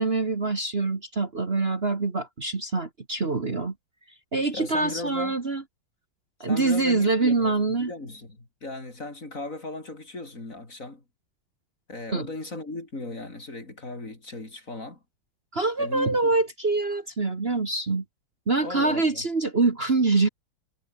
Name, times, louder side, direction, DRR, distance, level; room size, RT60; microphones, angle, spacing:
voice 1, 0.0-3.7 4.3-5.6 6.4-7.9 12.1-12.3 15.5-18.0 18.5-20.3, right 3 dB, 35° right, 2.0 m, -25 dB
voice 2, 4.5-5.4 6.4-7.5 7.8-11.0 11.9-15.0 15.8-16.3 18.6-19.2, left 2 dB, 45° left, 5.0 m, -37 dB
omnidirectional pair, 2.0 m